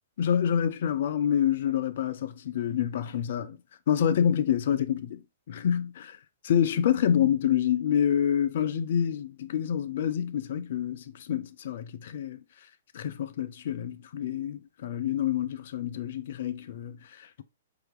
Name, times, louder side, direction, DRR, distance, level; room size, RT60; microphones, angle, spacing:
voice 1, 0.2-3.6 3.9-5.2 5.5-6.2 6.4-12.4 12.9-17.4, left 9 dB, 55° left, 0.5 m, -27 dB
4.8 x 4.5 x 2.4 m
figure-of-eight pair, 110°, 0 cm